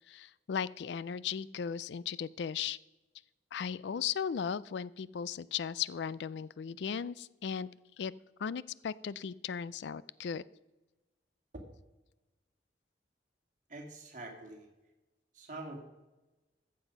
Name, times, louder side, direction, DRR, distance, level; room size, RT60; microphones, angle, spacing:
voice 1, 0.1-2.8 3.5-7.7 8.0-8.1 8.4-10.4, left 7 dB, 70° left, 20 dB, 0.4 m, -36 dB
voice 2, 13.7-14.7 15.3-15.8, right 2 dB, 45° right, 2 dB, 2.2 m, -45 dB
14.0 x 7.6 x 5.4 m, 1.1 s
head